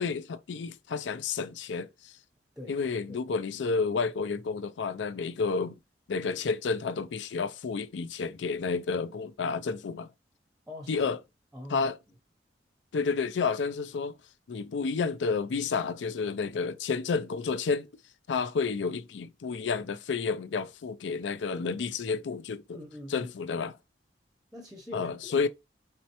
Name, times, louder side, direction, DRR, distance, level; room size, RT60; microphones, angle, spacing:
voice 1, 0.0-2.1 2.7-5.8 6.1-10.1 10.9-11.2 11.7-12.0 12.9-14.1 14.5-17.9 18.3-22.8 23.1-23.7 24.9-25.5, left 5 dB, 90° left, 0.4 m, -30 dB
voice 2, 10.7-11.1 11.5-11.9 22.7-23.3 24.5-25.2, left 1 dB, 5° right, 0.7 m, -43 dB
4.3 x 3.2 x 2.9 m
head